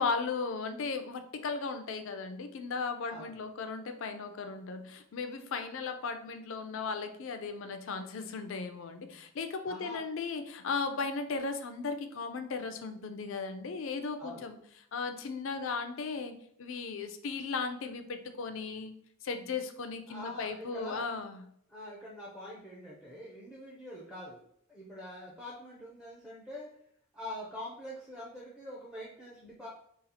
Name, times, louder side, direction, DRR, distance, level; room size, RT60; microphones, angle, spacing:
voice 1, 0.0-14.6 14.9-18.9 19.2-21.4, left 4 dB, 60° left, 8 dB, 0.4 m, -36 dB
voice 2, 9.6-10.0 14.2-14.5 20.1-21.1 21.7-24.4 24.7-26.7 27.1-29.7, left 1 dB, 5° right, -6 dB, 0.5 m, -44 dB
4.0 x 2.4 x 2.7 m, 0.68 s
head